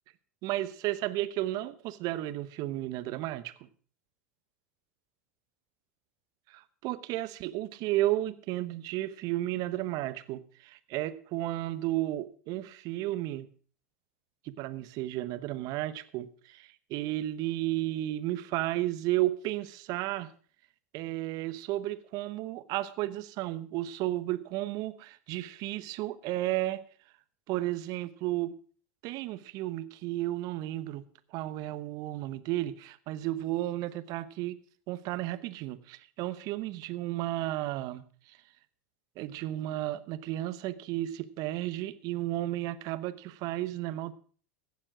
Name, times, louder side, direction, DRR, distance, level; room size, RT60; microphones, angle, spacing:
voice 1, 0.4-3.5 6.5-13.5 14.4-20.3 20.9-26.8 27.5-28.5 29.0-31.0 31.3-34.6 34.9-38.0 38.3-38.4 39.2-44.1, right 15 dB, 50° right, 15 dB, 1.0 m, -33 dB
16.0 x 7.4 x 6.1 m, 0.43 s
hypercardioid pair, 90°, 8 cm